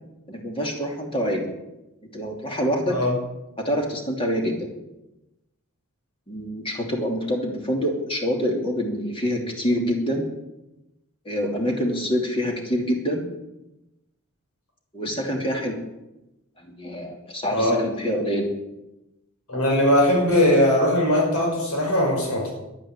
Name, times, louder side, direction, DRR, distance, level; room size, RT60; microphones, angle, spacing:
voice 1, 0.3-1.5 2.1-2.9 3.6-4.7 6.3-10.3 11.2-13.2 14.9-15.8 16.6-18.5, equal, 25° left, 1 dB, 2.9 m, -26 dB
voice 2, 19.5-22.5, left 1 dB, 85° left, -1 dB, 5.5 m, -20 dB
12.0 x 10.0 x 9.0 m, 0.95 s
head